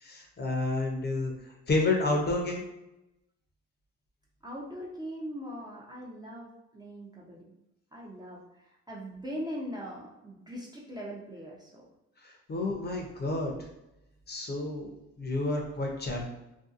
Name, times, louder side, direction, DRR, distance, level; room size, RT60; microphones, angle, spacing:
voice 1, 0.0-1.3 1.7-2.6 12.5-13.5 14.3-14.9 15.2-16.2, left 2 dB, 35° left, 0 dB, 0.6 m, -29 dB
voice 2, 4.4-7.6 7.9-8.4 8.9-11.8, equal, 15° right, -4 dB, 0.5 m, -40 dB
2.6 x 2.2 x 2.4 m, 0.91 s
cardioid pair, 90°, 30 cm